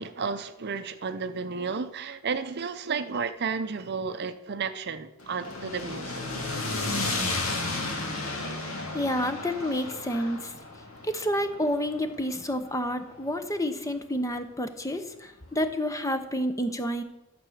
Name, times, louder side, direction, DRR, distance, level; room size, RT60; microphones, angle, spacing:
voice 1, 0.0-6.2, right 5 dB, 50° right, 0.6 m, -32 dB
sound 1, 5.2-13.4, left 2 dB, 65° left, 2.4 m, -33 dB
voice 2, 8.9-10.5 11.0-17.0, equal, 15° left, 0.8 m, -29 dB
12.0 x 6.9 x 6.4 m
head